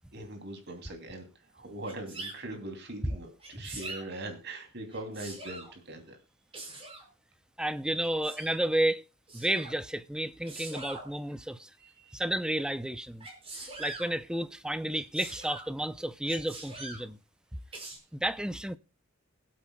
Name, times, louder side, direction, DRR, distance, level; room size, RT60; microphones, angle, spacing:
voice 1, 0.1-1.3 1.5-6.2 11.8-12.1, right 1 dB, 55° right, 2.7 m, -41 dB
Sneeze, 1.8-2.4 3.4-4.0 4.9-5.7 6.5-7.1 8.0-8.6 9.3-9.7 10.4-11.1 13.2-14.1 14.9-15.7 16.2-17.0 17.7-18.0, right 2 dB, 30° right, 4.8 m, -42 dB
voice 2, 7.6-9.0 9.3-11.7 12.1-13.3 13.8-17.2 18.1-18.8, right 1 dB, 5° right, 0.5 m, -31 dB
23.0 x 8.4 x 2.2 m
head